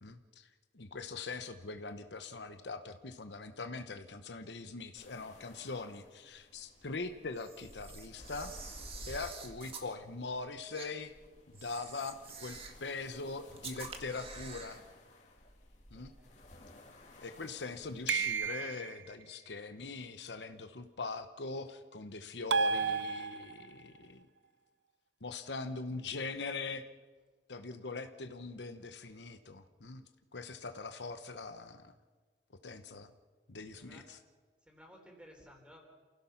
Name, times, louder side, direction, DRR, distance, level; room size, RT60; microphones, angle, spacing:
voice 1, 0.0-8.5 9.1-11.1 11.5-14.8 15.9-16.1 17.2-24.3 25.2-26.8 27.5-30.0 30.3-31.9 32.6-33.1 33.5-34.2, left 3 dB, 75° left, 9 dB, 1.0 m, -42 dB
sound 1, 4.9-18.4, left 1 dB, 40° left, 2.9 m, -55 dB
Camera, 7.3-9.9 10.7-10.9 11.5-12.8 13.6-14.8, right 5 dB, 35° right, 1.9 m, -48 dB
voice 2, 15.9-16.3 17.5-17.6 33.8-34.0 34.6-35.8, equal, 5° right, 1 dB, 4.1 m, -57 dB
sound 2, 18.1-19.0 22.5-23.7, right 5 dB, 90° right, 0.6 m, -32 dB
28.5 x 16.0 x 5.8 m, 1.4 s
head